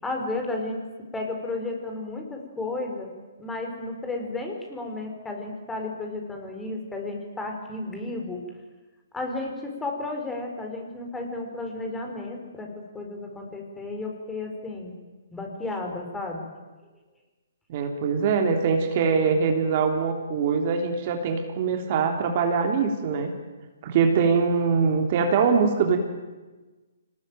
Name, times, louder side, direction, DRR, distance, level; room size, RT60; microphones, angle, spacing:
voice 1, 0.0-0.8 1.1-3.1 3.4-8.4 9.1-14.9 15.3-16.5, left 2 dB, 10° left, 2 dB, 4.8 m, -33 dB
voice 2, 17.7-23.3 23.8-26.0, right 5 dB, 45° right, 3 dB, 3.3 m, -23 dB
25.5 x 19.5 x 9.2 m, 1.3 s
hypercardioid pair, 135°, 0 cm